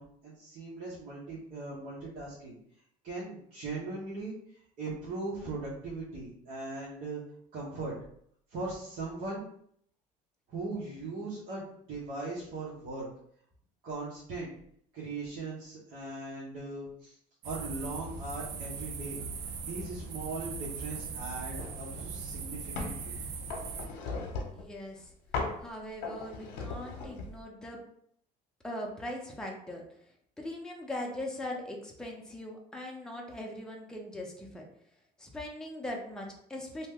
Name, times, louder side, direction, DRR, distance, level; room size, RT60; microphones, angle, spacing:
voice 1, 0.0-2.6 3.0-4.3 4.8-7.2 7.5-7.9 8.5-9.4 10.5-13.1 13.8-14.5 14.9-17.1 17.4-19.2 19.6-23.1, right 3 dB, 60° right, -6 dB, 1.0 m, -39 dB
sound 1, 17.4-23.9, right 5 dB, 75° right, 0.5 m, -39 dB
sound 2, 21.6-21.8 22.2-23.0 23.5-24.7 25.3-25.6 26.0-27.4, left 4 dB, 85° left, 0.8 m, -37 dB
voice 2, 24.5-25.1 25.6-27.8 28.6-29.8 30.4-34.6 35.2-36.9, left 1 dB, 5° left, -1 dB, 0.6 m, -40 dB
2.8 x 2.2 x 3.5 m, 0.68 s
supercardioid pair, 100°, 17 cm